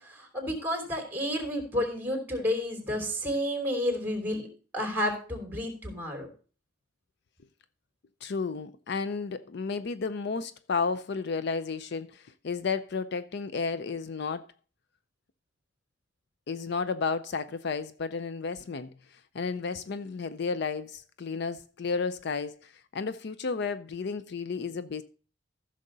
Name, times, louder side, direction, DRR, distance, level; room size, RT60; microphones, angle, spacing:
voice 1, 0.3-4.4 4.7-6.3, equal, 10° right, 3.2 m, -30 dB
voice 2, 8.2-14.5 16.5-18.9 19.3-25.0, left 5 dB, 55° left, 0.5 m, -32 dB
14.5 x 6.5 x 3.9 m
head